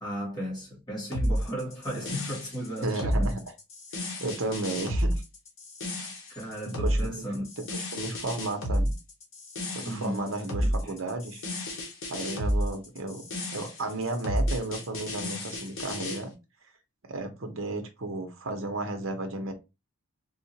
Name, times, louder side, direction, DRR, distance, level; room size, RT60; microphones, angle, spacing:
voice 1, 0.0-3.4 6.3-7.4 9.8-10.3 10.6-11.0, equal, 20° left, 1.8 m, -35 dB
sound 1, 1.1-16.2, equal, 70° left, 1.2 m, -31 dB
voice 2, 2.8-3.3 4.2-5.2 6.7-7.3 7.7-8.9 9.7-11.4 12.1-13.2 13.5-16.3 17.1-19.5, right 2 dB, 65° right, 0.8 m, -33 dB
3.8 x 2.4 x 2.8 m
head